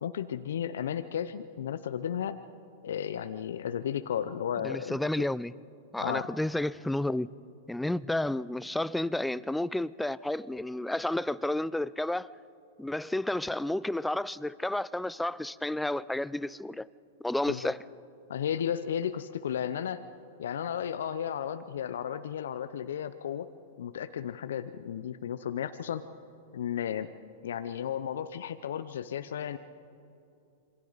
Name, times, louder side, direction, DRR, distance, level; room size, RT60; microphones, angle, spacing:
voice 1, 0.0-2.4 2.8-5.0 6.0-6.3 17.5-17.7 18.3-20.0 20.4-23.5 23.8-26.1 26.5-27.1 27.4-29.6, left 9 dB, 75° left, 0.7 m, -34 dB
voice 2, 4.6-5.5 5.9-7.3 7.7-12.3 12.8-16.9 17.2-17.8, left 1 dB, 5° left, 0.4 m, -31 dB
27.0 x 24.0 x 4.1 m
hypercardioid pair, 105°, 0 cm